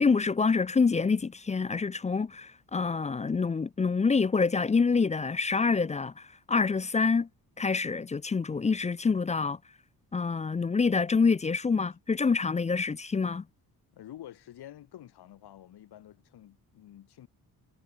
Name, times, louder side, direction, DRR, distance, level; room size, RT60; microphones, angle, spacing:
voice 1, 0.0-7.3 7.6-9.6 10.1-13.4, left 4 dB, 20° left, 0.5 m, -26 dB
voice 2, 13.9-17.3, left 12 dB, 90° left, 5.7 m, -49 dB
wide cardioid pair, 175°, 38 cm